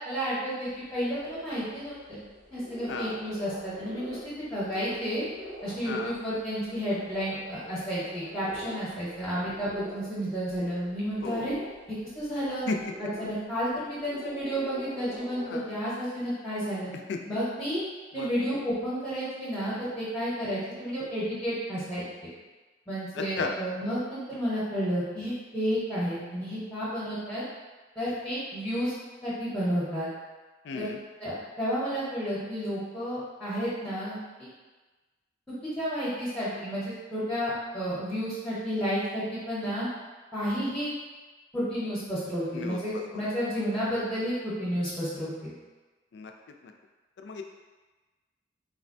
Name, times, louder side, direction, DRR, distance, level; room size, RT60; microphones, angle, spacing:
voice 1, 0.0-2.2 2.5-5.2 5.6-11.5 12.2-12.7 13.0-16.9 17.3-17.8 18.1-22.0 22.9-27.4 28.0-28.9 29.2-30.1 30.7-30.9 31.2-34.5 35.8-39.9 40.3-40.9 41.5-45.5, equal, 5° left, -10 dB, 0.7 m, -31 dB
sound 1, 0.6-15.5, equal, 90° right, 1.1 m, -46 dB
voice 2, 15.1-15.8 17.1-17.2 18.1-18.3 23.1-23.6 30.6-31.0 42.5-43.2 46.1-46.3 46.6-46.7 47.2-47.4, left 4 dB, 70° left, 3 dB, 0.3 m, -35 dB
3.8 x 2.1 x 2.5 m, 1.3 s
head